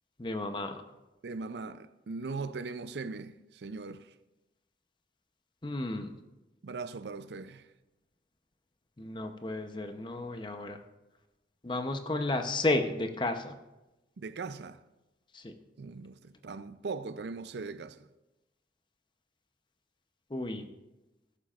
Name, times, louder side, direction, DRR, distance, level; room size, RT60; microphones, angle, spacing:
voice 1, 0.2-0.8 5.6-6.1 9.0-10.8 11.6-13.5 15.3-15.5 20.3-20.7, left 2 dB, 25° left, 0.7 m, -32 dB
voice 2, 1.2-4.1 6.6-7.7 14.2-14.8 15.8-18.0, right 4 dB, 70° right, 0.5 m, -40 dB
14.0 x 11.5 x 2.5 m
head